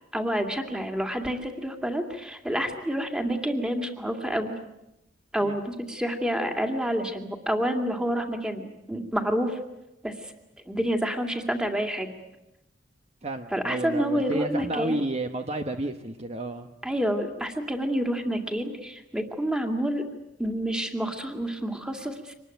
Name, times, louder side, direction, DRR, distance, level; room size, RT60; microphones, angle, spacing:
voice 1, 0.1-4.5 5.3-9.6 10.0-10.1 10.7-12.1 13.5-15.0 16.8-20.0 20.4-22.3, equal, 5° right, 5 dB, 2.4 m, -28 dB
voice 2, 13.2-16.7, right 2 dB, 35° right, 6 dB, 1.1 m, -31 dB
25.5 x 20.0 x 9.1 m, 0.90 s
head